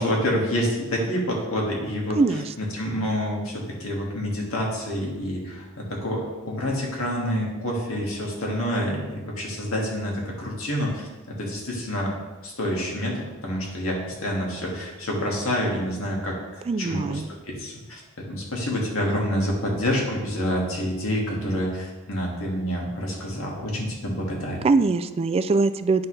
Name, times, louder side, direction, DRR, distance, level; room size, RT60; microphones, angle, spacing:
voice 1, 0.0-12.2 12.4-16.4 16.8-18.0 18.3-24.7, equal, 80° left, -2 dB, 1.9 m, -28 dB
voice 2, 16.7-17.3 24.6-26.1, right 3 dB, 30° right, 11 dB, 0.3 m, -22 dB
8.8 x 5.8 x 3.3 m, 1.2 s
head